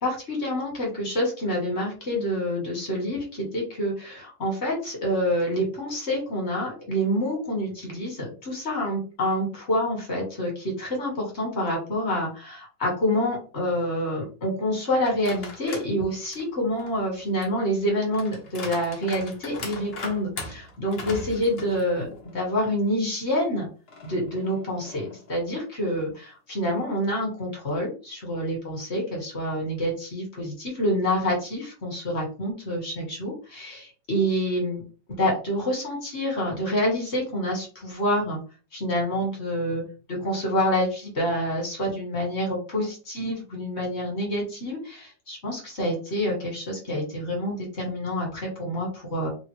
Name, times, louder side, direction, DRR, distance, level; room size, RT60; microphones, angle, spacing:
voice 1, 0.0-22.1 22.3-23.7 24.0-34.8 35.2-38.4 38.7-39.8 40.2-49.3, equal, 40° left, -1 dB, 1.2 m, -27 dB
sound 1, 15.0-15.9 16.3-22.4 22.8-22.9 23.9-25.3, left 2 dB, 85° left, 0.5 m, -40 dB
3.2 x 2.0 x 3.0 m, 0.35 s
omnidirectional pair, 2.0 m